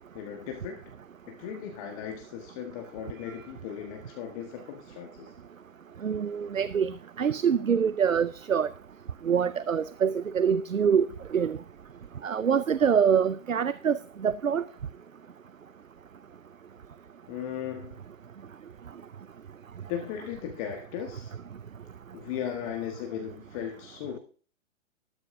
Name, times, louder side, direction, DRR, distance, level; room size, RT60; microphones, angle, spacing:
voice 1, 0.1-0.8 1.3-5.3 17.3-18.0 19.9-21.3 22.1-24.2, left 9 dB, 25° left, 1.4 m, -37 dB
voice 2, 6.0-8.7 9.3-11.1 11.3-11.6 12.2-14.6, right 7 dB, 85° right, 0.5 m, -25 dB
13.0 x 12.5 x 2.6 m
figure-of-eight pair, 120°, 39 cm